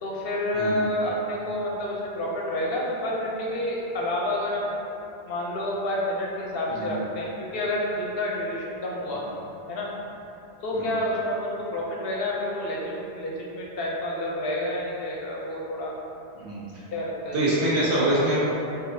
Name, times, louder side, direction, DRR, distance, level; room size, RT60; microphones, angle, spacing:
voice 1, 0.0-4.8 5.3-9.2 9.7-9.9 10.6-15.9 16.9-17.4, left 1 dB, 65° left, -3 dB, 0.7 m, -29 dB
voice 2, 17.3-18.4, right 1 dB, 60° right, -9 dB, 1.2 m, -24 dB
4.7 x 2.8 x 2.6 m, 2.9 s
omnidirectional pair, 1.1 m